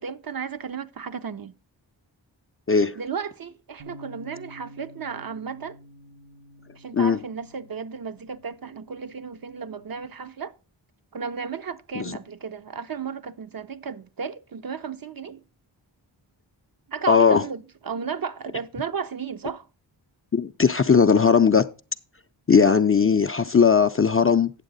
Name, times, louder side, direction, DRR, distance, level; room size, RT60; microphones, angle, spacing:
voice 1, 0.0-1.5 2.9-5.8 6.8-10.5 11.1-15.4 16.9-19.7, right 6 dB, 50° right, 0.6 m, -34 dB
Bass guitar, 3.8-10.0, equal, 80° right, 2.4 m, -49 dB
voice 2, 17.1-17.4 20.3-21.7 22.5-24.5, left 6 dB, 30° left, 0.4 m, -18 dB
9.0 x 7.0 x 3.9 m
cardioid pair, 45°, 47 cm